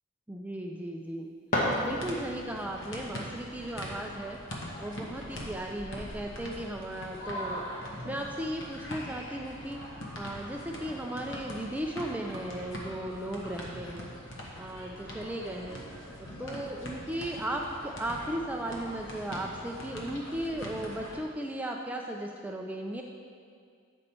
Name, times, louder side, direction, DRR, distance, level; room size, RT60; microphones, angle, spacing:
voice 1, 0.3-1.3 1.8-4.4 4.8-9.8 10.2-14.1 14.4-15.8 16.2-23.0, right 1 dB, 5° right, 1 dB, 0.3 m, -36 dB
sound 1, 1.0-2.5, left 1 dB, 40° left, 1.4 m, -31 dB
sound 2, 1.8-21.2, equal, 60° left, 1.2 m, -42 dB
8.2 x 5.3 x 4.3 m, 2.1 s
head